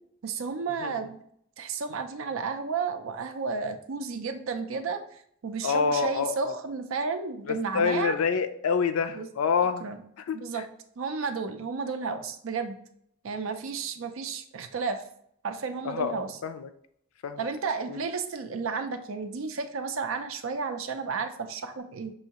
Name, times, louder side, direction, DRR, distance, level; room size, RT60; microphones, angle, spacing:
voice 1, 0.2-1.2 1.6-5.0 5.4-8.2 9.1-9.3 9.8-10.0 10.3-10.6 11.0-12.8 13.2-15.0 15.4-16.3 17.4-22.1, right 5 dB, 65° right, 7 dB, 0.5 m, -32 dB
voice 2, 5.6-6.6 7.5-9.9 10.2-10.6 15.8-16.7 17.2-17.5 17.9-18.0, left 6 dB, 90° left, 10 dB, 0.4 m, -27 dB
5.5 x 2.7 x 2.9 m, 0.68 s
head